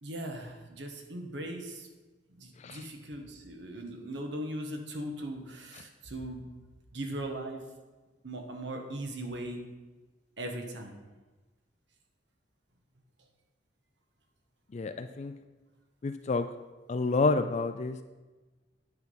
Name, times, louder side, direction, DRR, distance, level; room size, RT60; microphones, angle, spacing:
voice 1, 0.0-1.9 2.3-6.5 6.9-7.6 8.2-9.7 10.4-11.0, right 1 dB, 85° right, 4 dB, 1.4 m, -39 dB
voice 2, 14.7-15.3 16.0-16.5 16.9-18.0, left 3 dB, 40° left, 9 dB, 0.4 m, -29 dB
9.5 x 6.0 x 5.5 m, 1.2 s
head